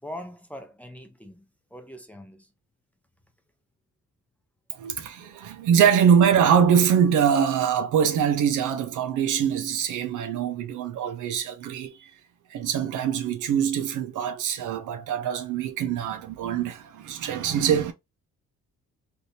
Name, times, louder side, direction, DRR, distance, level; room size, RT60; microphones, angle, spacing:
voice 1, 0.0-1.4 1.7-2.5, left 1 dB, 5° left, 0.6 m, -41 dB
voice 2, 4.8-11.9 12.5-17.9, right 8 dB, 80° right, 0.8 m, -23 dB
3.4 x 2.8 x 2.7 m
cardioid pair, 130°, 30 cm